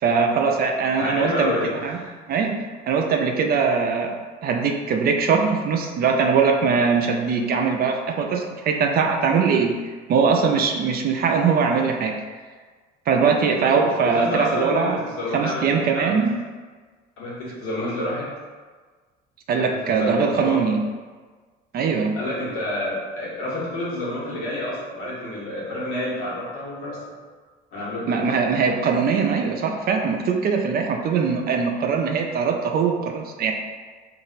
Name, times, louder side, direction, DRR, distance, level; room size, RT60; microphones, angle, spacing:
voice 1, 0.0-1.6 1.8-2.0 2.3-4.1 4.4-9.8 10.1-12.2 13.1-15.0 15.3-16.4 19.5-20.8 21.7-22.2 28.1-33.5, right 5 dB, 45° right, 3 dB, 0.4 m, -21 dB
voice 2, 1.0-2.1 13.6-16.2 17.2-18.3 19.5-20.6 22.2-27.0 27.7-28.2, left 1 dB, 75° left, -6 dB, 1.3 m, -29 dB
2.5 x 2.0 x 3.9 m, 1.4 s
supercardioid pair, 85°, 21 cm